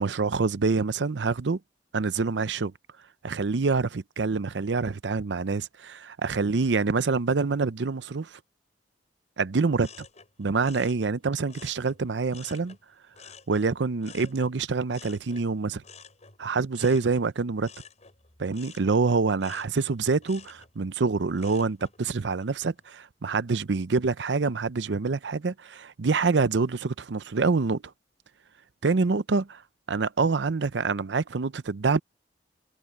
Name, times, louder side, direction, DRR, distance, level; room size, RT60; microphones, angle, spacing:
voice 1, 0.0-1.6 1.9-2.7 3.2-8.4 9.4-9.9 10.4-12.8 13.5-15.8 16.4-17.7 18.4-27.8 28.8-29.6 29.9-32.0, right 4 dB, 85° right, 0.6 m, -26 dB
sound 1, 9.8-12.8 13.1-22.0 22.4-22.9, left 5 dB, 40° left, 6.3 m, -50 dB
head